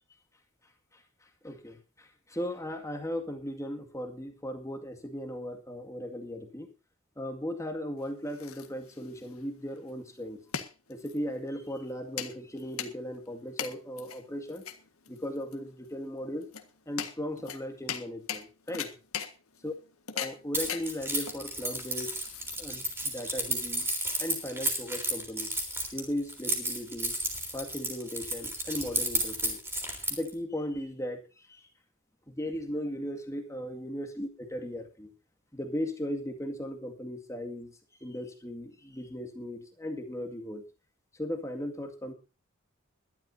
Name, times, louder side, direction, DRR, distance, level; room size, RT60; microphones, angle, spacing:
voice 1, 0.6-6.7 7.2-10.4 10.9-14.7 15.1-16.5 16.9-19.0 19.6-19.7 20.1-22.2 22.6-23.9 24.2-25.6 25.9-27.2 27.5-29.6 30.1-31.7 32.3-35.1 35.5-40.6 41.1-42.1, equal, 15° left, 3 dB, 2.1 m, -37 dB
sound 1, 8.0-22.9, left 8 dB, 80° left, 1.7 m, -41 dB
Keys jangling, 20.5-30.3, right 1 dB, 10° right, 3.7 m, -32 dB
22.0 x 12.0 x 2.8 m, 0.31 s
head